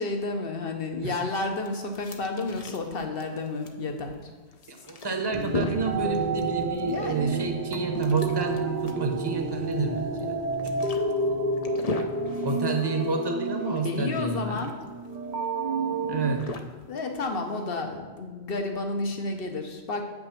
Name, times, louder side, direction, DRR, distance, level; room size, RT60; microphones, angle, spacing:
voice 1, 0.0-4.3 6.8-7.4 13.8-14.8 16.9-20.0, left 3 dB, 65° left, 4 dB, 1.2 m, -31 dB
sound 1, 1.3-17.8, left 3 dB, 40° left, 0.7 m, -39 dB
voice 2, 4.7-10.3 12.4-14.6 16.1-16.5, right 3 dB, 25° right, 3 dB, 0.9 m, -29 dB
sound 2, 5.3-16.4, right 3 dB, 50° right, 0.7 m, -30 dB
8.0 x 6.1 x 5.9 m, 1.3 s
omnidirectional pair, 1.1 m